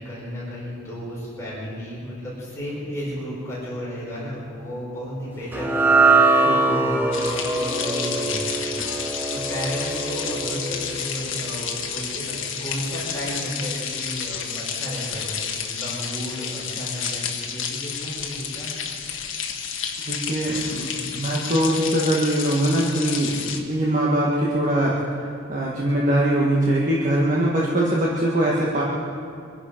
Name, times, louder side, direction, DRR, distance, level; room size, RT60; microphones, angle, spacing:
voice 1, 0.0-8.8 9.3-18.7, equal, 15° left, -7 dB, 5.0 m, -33 dB
sound 1, 5.5-11.9, right 3 dB, 10° right, 0.9 m, -22 dB
voice 2, 6.4-6.8 20.1-28.8, right 1 dB, 40° right, -5 dB, 1.8 m, -22 dB
sound 2, 7.1-23.6, left 7 dB, 70° left, 1.5 m, -31 dB
25.0 x 11.0 x 5.2 m, 2.4 s
head